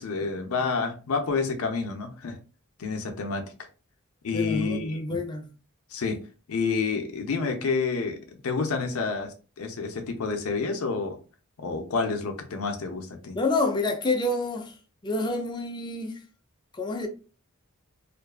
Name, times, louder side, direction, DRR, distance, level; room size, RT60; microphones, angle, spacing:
voice 1, 0.0-2.4 2.8-3.4 4.2-5.0 5.9-6.2 6.5-11.2 11.6-13.4, left 4 dB, 85° left, 0.5 m, -29 dB
voice 2, 4.3-5.5 13.3-14.7 15.0-16.2 16.7-17.1, left 2 dB, 20° left, 0.4 m, -28 dB
2.5 x 2.3 x 2.2 m
head